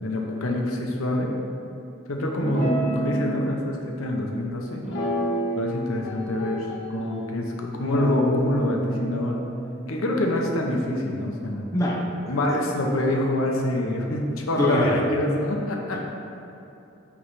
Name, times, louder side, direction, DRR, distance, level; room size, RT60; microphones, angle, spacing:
voice 1, 0.0-1.3 2.1-4.8 5.6-9.4 9.9-11.7 12.3-16.0, left 1 dB, 80° left, 0 dB, 0.9 m, -26 dB
Guitar, 2.4-3.6 4.8-5.8 6.1-7.2 7.8-11.3, right 1 dB, 60° left, 1.5 m, -30 dB
voice 2, 11.7-12.6 14.1-14.2 14.6-15.0, left 1 dB, 15° left, -4 dB, 0.9 m, -25 dB
8.7 x 3.3 x 5.5 m, 2.9 s
head